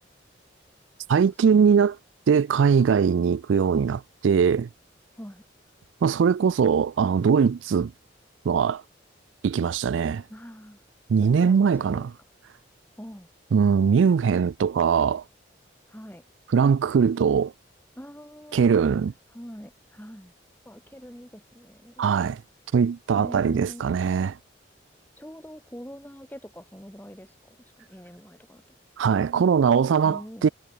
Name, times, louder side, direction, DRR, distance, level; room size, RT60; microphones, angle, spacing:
voice 1, 1.1-2.0 2.3-4.7 6.0-7.9 8.5-8.8 9.4-10.2 11.1-12.1 13.5-15.2 16.5-17.5 18.5-19.1 22.0-22.4 22.7-24.4 29.0-30.5, right 6 dB, 85° right, 0.4 m, -21 dB
voice 2, 10.3-10.8 11.2-12.1 13.0-13.3 14.1-14.3 15.9-16.2 17.9-18.8 19.3-20.3 20.7-22.2 23.1-23.8 25.2-28.6 30.0-30.5, equal, 10° left, 5.2 m, -43 dB
head